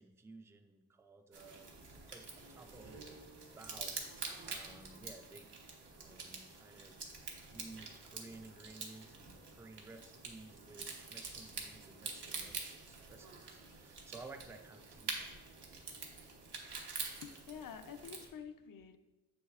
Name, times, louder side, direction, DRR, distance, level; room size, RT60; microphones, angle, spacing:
voice 1, 0.0-3.0 3.5-4.0 4.4-5.5 6.0-7.0 7.5-15.3, right 3 dB, 5° right, 7 dB, 0.3 m, -55 dB
sound 1, 1.3-18.3, right 4 dB, 85° right, 1.0 m, -47 dB
voice 2, 17.2-19.0, left 7 dB, 55° left, 9 dB, 0.5 m, -48 dB
7.1 x 6.3 x 2.4 m, 1.1 s
wide cardioid pair, 95°, 40 cm